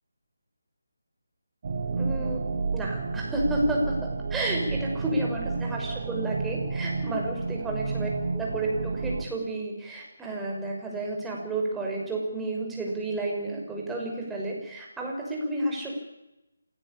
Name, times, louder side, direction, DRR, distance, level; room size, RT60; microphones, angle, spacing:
sound 1, 1.6-9.3, right 4 dB, 40° right, 3.3 m, -30 dB
voice 1, 1.9-2.4 2.7-4.0 4.3-16.0, right 2 dB, 5° right, -2 dB, 6.4 m, -31 dB
26.5 x 18.0 x 8.7 m, 0.95 s
figure-of-eight pair, 155°, 0 cm